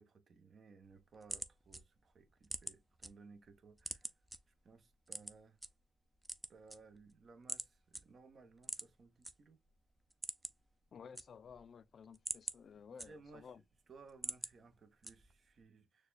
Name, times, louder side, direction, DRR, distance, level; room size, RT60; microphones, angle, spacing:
voice 1, 0.0-4.1 4.5-5.6 6.5-9.6 12.9-13.5 13.9-16.1, right 4 dB, 45° right, 0.8 m, -60 dB
sound 1, 0.8-3.1 3.5-4.4 5.1-5.7 6.1-7.1 7.5-7.7 7.9-8.0 8.6-9.3 9.7-9.8 10.1-10.7 11.0-11.6 12.0-13.5 13.9-14.5 15.0-15.5, right 1 dB, 10° right, 0.5 m, -44 dB
voice 2, 10.9-13.6, left 6 dB, 50° left, 0.4 m, -55 dB
6.4 x 2.3 x 2.3 m
cardioid pair, 90°, 0 cm